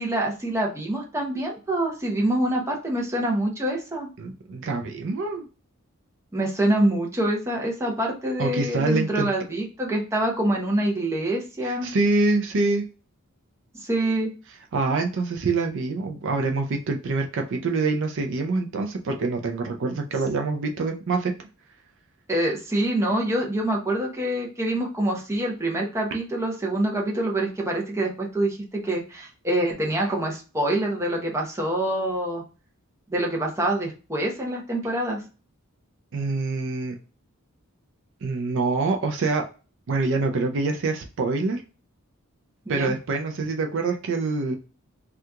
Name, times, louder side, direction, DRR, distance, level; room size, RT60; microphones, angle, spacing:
voice 1, 0.0-4.1 6.3-11.9 13.7-14.3 22.3-32.4 33.1-35.2 42.7-42.9, right 1 dB, 15° right, -1 dB, 0.7 m, -25 dB
voice 2, 4.2-5.5 8.4-9.3 11.6-12.8 14.7-21.3 36.1-37.0 38.2-39.5 39.9-41.6 42.7-44.6, right 3 dB, 60° right, 4 dB, 0.4 m, -25 dB
2.8 x 2.4 x 3.4 m, 0.34 s
head